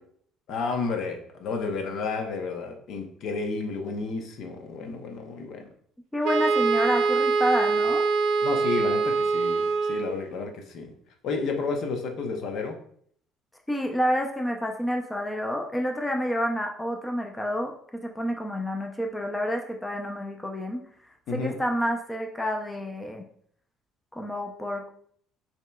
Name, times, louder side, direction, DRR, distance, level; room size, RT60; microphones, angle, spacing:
voice 1, 0.5-5.7 8.4-10.9 11.2-12.8 21.3-21.5, left 4 dB, 60° left, 4 dB, 0.7 m, -31 dB
voice 2, 6.1-8.0 13.7-20.8 21.3-23.2 24.1-24.9, equal, 10° left, 2 dB, 0.4 m, -29 dB
Wind instrument woodwind instrument, 6.2-10.3, right 4 dB, 75° right, 0.4 m, -24 dB
5.3 x 2.9 x 2.2 m, 0.62 s
cardioid pair, 125°, 0 cm